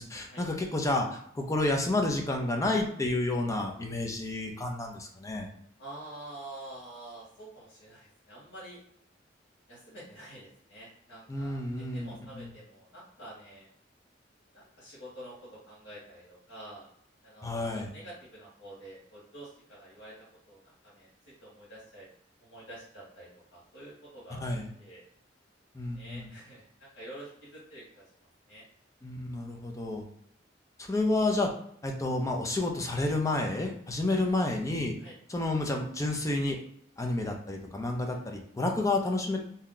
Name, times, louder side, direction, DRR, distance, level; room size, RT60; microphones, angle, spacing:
voice 1, 0.0-5.5 11.3-12.5 17.4-17.9 24.4-24.7 25.7-26.3 29.0-30.1 30.8-31.5 31.8-35.0 35.3-36.6 37.0-39.4, left 2 dB, 15° left, 2 dB, 0.5 m, -30 dB
voice 2, 5.8-8.8 9.7-13.7 14.5-16.9 17.2-21.1 21.4-22.1 22.4-24.4 24.8-25.0 25.9-28.0 28.5-28.6 34.1-34.2 35.0-35.2 38.1-38.2, right 1 dB, 75° left, -7 dB, 1.4 m, -48 dB
2.7 x 2.2 x 3.8 m, 0.68 s
head